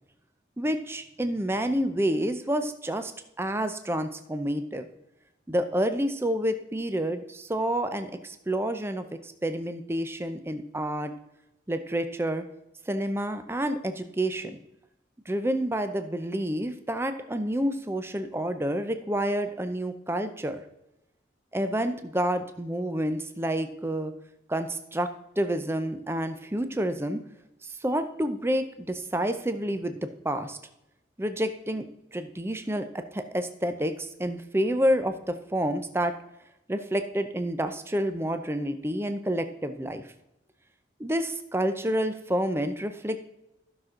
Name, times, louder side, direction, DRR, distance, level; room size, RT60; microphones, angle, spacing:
voice 1, 0.6-3.1 3.4-4.9 5.5-11.1 11.7-12.4 12.9-14.6 15.3-20.6 21.5-24.1 24.5-25.1 25.4-27.2 27.6-30.6 31.2-36.1 36.7-40.0 41.0-43.2, equal, 15° right, 8 dB, 0.6 m, -29 dB
14.5 x 6.0 x 3.8 m, 0.86 s
head